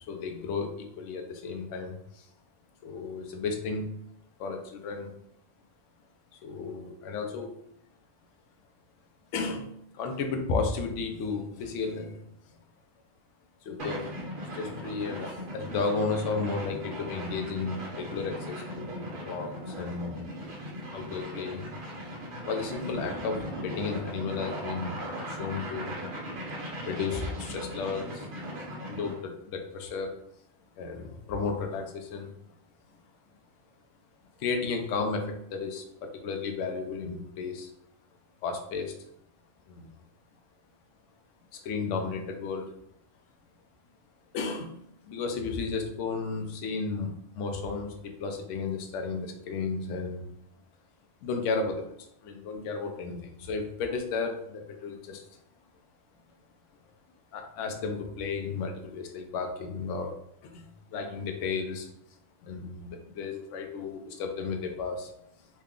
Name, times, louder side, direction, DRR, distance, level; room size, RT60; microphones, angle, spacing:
voice 1, 0.1-2.3 2.8-3.9 4.4-5.1 6.3-7.5 9.3-9.7 9.9-12.2 13.6-14.2 14.5-20.1 20.9-21.6 22.4-25.0 25.3-26.0 26.8-28.3 28.9-30.2 30.8-32.3 34.4-37.7 38.4-39.0 39.7-39.9 41.5-42.7 44.3-44.7 45.0-50.3 51.2-51.8 52.2-55.2 57.3-60.1 60.4-61.9 62.4-65.1, left 4 dB, 70° left, 4 dB, 0.9 m, -33 dB
sound 1, 13.8-29.2, equal, 50° right, 0.8 m, -38 dB
3.1 x 2.3 x 3.6 m, 0.73 s
omnidirectional pair, 1.4 m